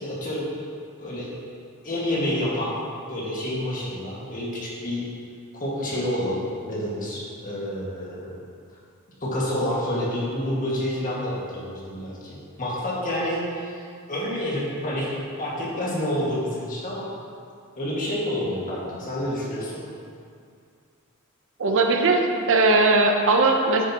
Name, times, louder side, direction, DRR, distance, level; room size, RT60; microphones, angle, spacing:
voice 1, 0.0-0.5 1.0-1.3 1.8-2.7 3.1-5.0 5.5-6.4 6.7-8.4 9.2-17.1 17.8-19.8, left 1 dB, 40° left, -6 dB, 1.8 m, -28 dB
voice 2, 21.6-22.2 22.5-23.9, right 3 dB, 60° right, 3 dB, 0.7 m, -19 dB
9.0 x 7.4 x 2.9 m, 2.3 s
head